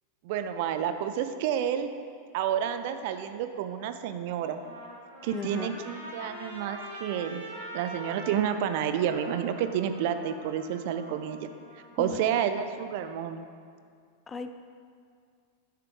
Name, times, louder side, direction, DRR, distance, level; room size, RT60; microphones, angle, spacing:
voice 1, 0.2-1.9 2.3-4.6 5.2-7.4 7.7-11.5 12.0-13.5, right 9 dB, 50° right, 9 dB, 0.4 m, -30 dB
Trumpet, 4.5-11.9, right 1 dB, 80° right, 1.9 m, -44 dB
voice 2, 5.3-5.7 12.0-12.2 14.3-14.6, left 5 dB, 20° left, 8 dB, 0.4 m, -36 dB
10.0 x 6.7 x 3.3 m, 2.2 s
figure-of-eight pair, 90°, 0 cm